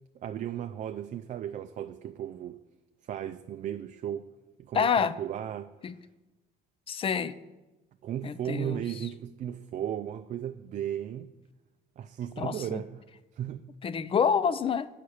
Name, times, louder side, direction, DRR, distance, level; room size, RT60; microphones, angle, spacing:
voice 1, 0.1-2.6 3.0-4.3 4.6-5.7 8.0-11.3 12.0-13.1 13.3-13.6, right 10 dB, 45° right, 0.4 m, -35 dB
voice 2, 4.7-5.2 5.8-5.9 6.9-7.3 8.2-8.8 12.4-12.8 13.8-14.9, left 7 dB, 35° left, 0.4 m, -27 dB
8.5 x 5.7 x 6.4 m
cardioid pair, 110°, 17 cm